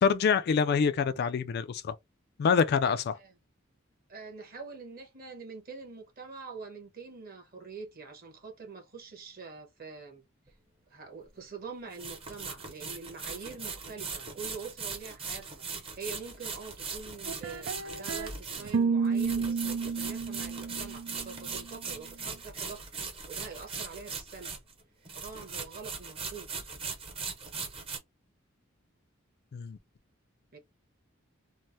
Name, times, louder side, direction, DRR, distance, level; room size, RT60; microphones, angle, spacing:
voice 1, 0.0-1.9 2.4-3.2 29.5-29.8, left 6 dB, 55° left, 0.3 m, -26 dB
voice 2, 4.1-10.2 10.9-22.9 23.3-24.6 25.1-26.5 30.5-30.6, right 4 dB, 50° right, 1.2 m, -45 dB
sound 1, 10.5-10.6 11.9-24.8 25.1-28.0, right 5 dB, 30° right, 0.8 m, -40 dB
sound 2, 17.3-18.3 18.6-21.6, right 5 dB, 85° right, 0.5 m, -31 dB
3.2 x 2.1 x 2.6 m
head